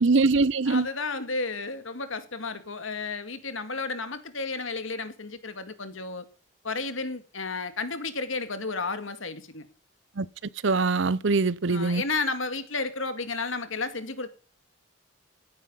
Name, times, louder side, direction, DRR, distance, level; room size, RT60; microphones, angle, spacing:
voice 1, 0.0-0.9 10.2-10.3 10.6-12.0, right 3 dB, 70° right, 0.7 m, -22 dB
voice 2, 0.7-6.2 6.6-9.7 11.7-14.3, left 3 dB, 80° left, 2.2 m, -32 dB
16.5 x 10.0 x 5.5 m
head